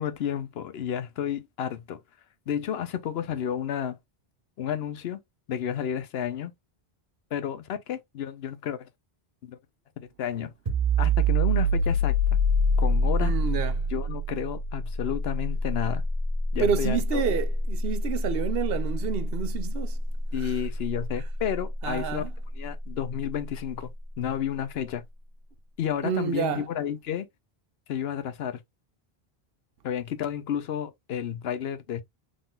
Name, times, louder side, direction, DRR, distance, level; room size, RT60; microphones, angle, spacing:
voice 1, 0.0-2.0 2.5-4.0 4.6-5.2 5.5-6.5 7.3-8.9 9.4-9.6 10.0-10.5 11.0-12.2 12.8-13.3 13.9-16.0 16.5-17.2 20.3-22.2 22.6-25.0 25.8-27.3 27.9-28.6 29.8-32.0, left 9 dB, 80° left, 0.9 m, -31 dB
sound 1, 10.7-22.1, equal, 40° right, 1.3 m, -26 dB
voice 2, 13.2-13.8 16.6-20.0 20.4-20.5 21.8-22.3 26.0-26.7, right 7 dB, 70° right, 0.8 m, -29 dB
3.8 x 3.8 x 2.4 m
omnidirectional pair, 1.0 m